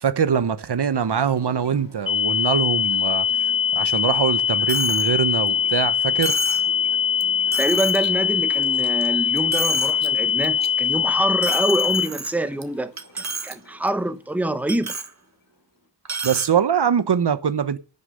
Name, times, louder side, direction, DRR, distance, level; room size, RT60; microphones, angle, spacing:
voice 1, 0.0-3.3 3.7-6.4 16.2-17.8, right 7 dB, 70° right, 1.0 m, -22 dB
sound 1, 1.1-15.9, left 1 dB, 55° left, 4.7 m, -47 dB
sound 2, 2.1-12.1, left 9 dB, 30° left, 1.0 m, -22 dB
Coin (dropping), 4.7-5.1 5.5-5.6 6.2-6.7 7.2-7.3 7.5-8.1 8.5-9.1 9.4-10.1 10.4-10.7 11.4-12.6 13.0-13.5 13.9-14.0 14.7-15.1 16.0-16.5, right 5 dB, 40° right, 1.5 m, -31 dB
voice 2, 7.6-15.0, right 2 dB, 5° right, 0.9 m, -26 dB
11.0 x 6.8 x 6.5 m
wide cardioid pair, 95°, 42 cm